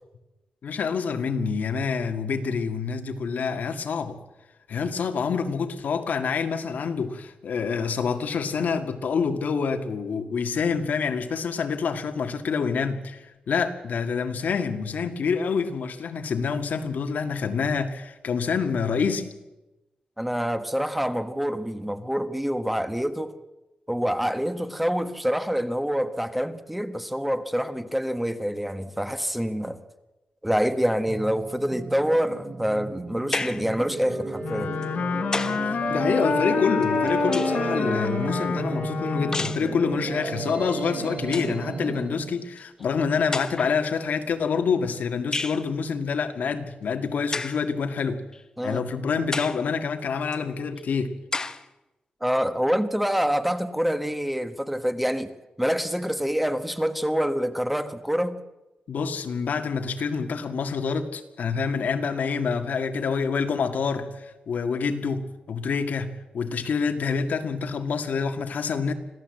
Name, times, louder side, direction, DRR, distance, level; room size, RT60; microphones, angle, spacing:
voice 1, 0.6-4.2 4.7-19.4 35.6-48.2 48.6-51.1 58.9-68.9, left 5 dB, 90° left, 2.1 m, -27 dB
voice 2, 20.2-23.3 23.9-29.8 30.4-34.7 48.6-48.8 52.2-55.3 55.6-58.4, equal, 5° right, 1.2 m, -26 dB
sound 1, 31.1-42.4, right 3 dB, 45° right, 3.1 m, -32 dB
sound 2, 33.3-33.7 34.8-35.7 36.8-37.7 39.3-39.7 40.8-40.9 41.2-41.6 42.6-42.7 43.3-43.8 45.3-45.7 47.3-47.7 48.3-48.4 49.3-49.7 50.3-50.4 51.3-51.7, left 3 dB, 25° left, 0.8 m, -31 dB
Wind instrument woodwind instrument, 34.4-39.8, left 7 dB, 65° left, 0.7 m, -28 dB
25.5 x 16.5 x 7.9 m
wide cardioid pair, 170°, 3 cm